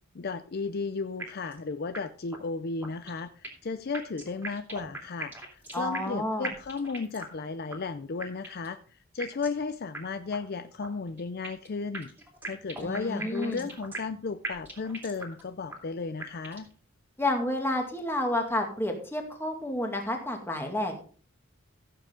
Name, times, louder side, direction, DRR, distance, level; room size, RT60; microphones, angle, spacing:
voice 1, 0.1-12.1 12.4-16.7, left 4 dB, 45° left, 12 dB, 0.5 m, -34 dB
sound 1, 1.2-1.6 1.9-2.0 2.3-2.4 2.8-3.7 3.9-6.2 6.4-7.4 7.7-7.8 8.2-8.7 9.2-9.6 9.9-10.0 10.3-10.4 10.8-11.7 11.9-14.2 14.4-15.4 15.7-15.8 16.2-16.7, right 3 dB, 10° right, 2.6 m, -39 dB
voice 2, 5.7-6.5 12.8-13.7 17.2-20.9, left 1 dB, 10° left, 3 dB, 2.1 m, -30 dB
15.5 x 7.5 x 3.7 m, 0.43 s
head